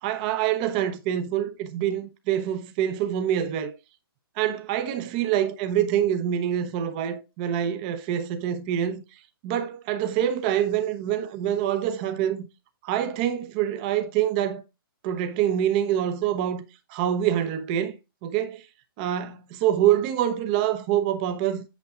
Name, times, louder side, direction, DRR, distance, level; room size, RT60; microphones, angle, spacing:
voice 1, 0.0-3.7 4.4-9.0 9.4-12.4 12.8-14.6 15.0-16.6 16.9-18.6 19.0-21.6, right 10 dB, 20° right, 1.0 m, -25 dB
8.4 x 7.9 x 2.5 m
hypercardioid pair, 170°, 13 cm